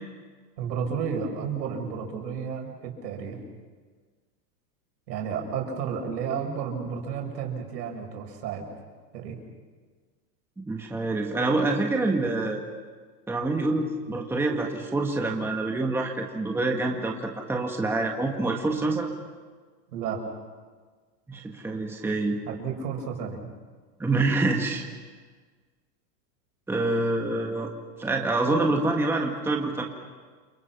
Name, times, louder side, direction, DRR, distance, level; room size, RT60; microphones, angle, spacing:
voice 1, 0.6-3.4 5.1-8.6 9.1-9.4 19.9-20.2 22.5-23.5, right 6 dB, 75° right, 2 dB, 6.5 m, -32 dB
voice 2, 10.7-12.6 13.3-19.1 21.3-22.4 24.0-24.8 26.7-27.7 28.0-29.8, right 2 dB, 5° right, 1 dB, 1.6 m, -26 dB
29.5 x 26.0 x 6.0 m, 1.5 s
supercardioid pair, 155°, 49 cm